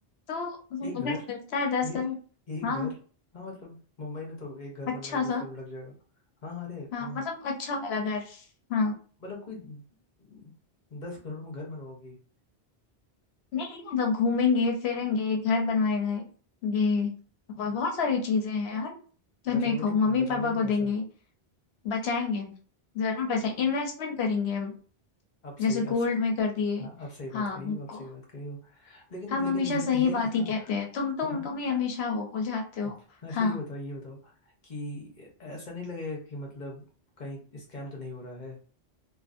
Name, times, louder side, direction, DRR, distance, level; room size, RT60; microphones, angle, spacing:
voice 1, 0.3-2.1 2.6-2.9 5.0-5.4 6.9-8.4 8.7-8.9 13.5-16.2 16.6-17.1 17.6-19.0 19.4-21.0 21.8-22.5 22.9-24.7 25.6-26.9 27.3-28.0 29.3-32.9 33.3-33.6, left 4 dB, 80° left, 3 dB, 0.9 m, -28 dB
voice 2, 0.8-1.2 1.8-2.0 2.5-2.9 3.3-5.9 6.4-7.3 9.2-9.8 10.2-10.5 10.9-12.2 19.5-20.9 25.4-26.1 26.8-30.7 31.2-31.5 32.8-32.9 33.2-34.3 34.6-36.8 37.2-38.6, left 2 dB, 45° left, -1 dB, 0.9 m, -40 dB
2.6 x 2.5 x 2.5 m, 0.40 s
omnidirectional pair, 1.1 m